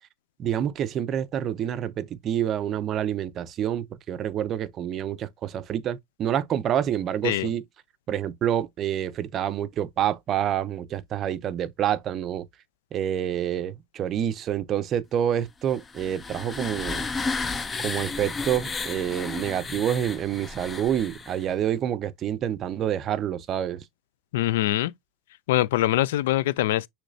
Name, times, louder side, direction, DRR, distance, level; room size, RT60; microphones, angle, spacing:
voice 1, 0.4-7.6 8.1-12.5 12.9-17.1 17.8-23.8, right 10 dB, 35° right, 0.6 m, -27 dB
sound 1, 15.7-21.5, left 4 dB, 15° left, 0.5 m, -33 dB
voice 2, 24.3-24.9 25.5-26.9, left 15 dB, 70° left, 0.4 m, -23 dB
6.3 x 3.1 x 2.6 m
supercardioid pair, 125°, 0 cm